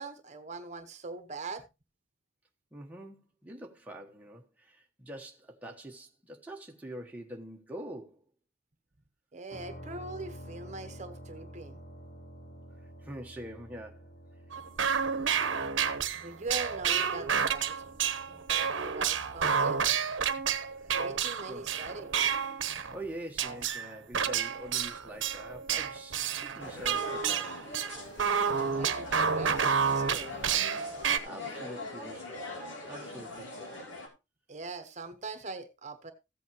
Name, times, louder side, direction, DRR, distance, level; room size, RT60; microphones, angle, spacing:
voice 1, 0.0-1.6 9.3-11.8 16.1-17.8 18.3-19.8 20.9-22.3 28.7-30.4 34.5-36.1, right 3 dB, 35° right, 1.1 m, -42 dB
voice 2, 2.7-8.2 13.0-14.1 21.5-21.6 22.9-27.5 31.2-32.5 32.9-33.7, right 1 dB, 10° right, 1.2 m, -45 dB
sound 1, 9.5-23.2, equal, 55° left, 2.1 m, -51 dB
sound 2, 14.5-23.1 23.4-31.2, right 7 dB, 75° right, 1.0 m, -30 dB
sound 3, 26.6-34.1, left 2 dB, 70° left, 3.0 m, -42 dB
14.5 x 8.3 x 3.0 m
head